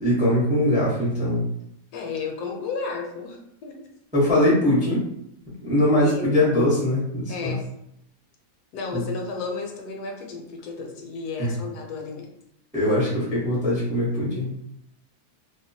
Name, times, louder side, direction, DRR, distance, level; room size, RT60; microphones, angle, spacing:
voice 1, 0.0-1.4 4.1-5.0 5.6-7.6 8.9-9.0 11.4-11.5 12.7-14.5, left 1 dB, 10° right, -7 dB, 0.4 m, -21 dB
voice 2, 1.9-3.8 6.0-6.3 7.3-7.6 8.7-12.3, left 4 dB, 80° left, 1 dB, 1.1 m, -33 dB
2.8 x 2.1 x 2.6 m, 0.77 s
omnidirectional pair, 1.7 m